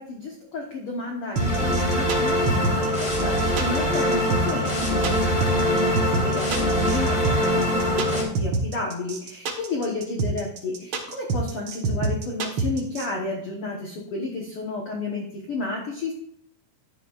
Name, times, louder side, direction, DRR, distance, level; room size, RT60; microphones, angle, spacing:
voice 1, 0.0-16.1, left 3 dB, 60° left, 0 dB, 1.6 m, -32 dB
sound 1, 1.4-8.2, equal, 25° left, 2.2 m, -23 dB
sound 2, 1.4-13.1, right 4 dB, 60° right, 1.4 m, -26 dB
11.5 x 9.9 x 2.4 m, 0.69 s
omnidirectional pair, 3.9 m